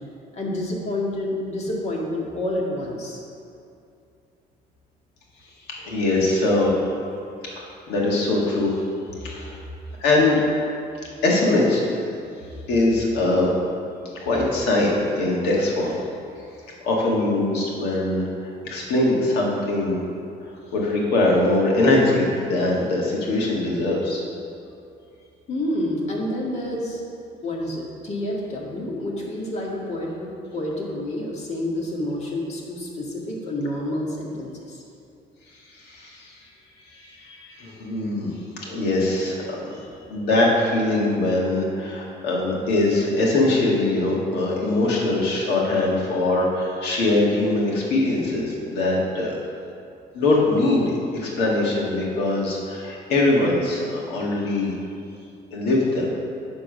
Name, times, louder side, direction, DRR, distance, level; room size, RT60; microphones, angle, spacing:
voice 1, 0.3-3.2 7.2-7.3 25.5-27.0 27.4-34.8, left 1 dB, 40° left, -3 dB, 1.9 m, -28 dB
voice 2, 5.8-6.8 7.6-8.8 9.2-9.6 10.0-10.4 11.2-12.0 12.7-13.5 14.2-16.0 16.8-20.0 20.4-24.2 35.7-36.3 36.9-38.3 38.6-49.4 50.1-54.7 55.5-56.1, left 2 dB, 85° left, -3 dB, 1.9 m, -22 dB
10.0 x 3.8 x 6.2 m, 2.5 s
cardioid pair, 110°, 17 cm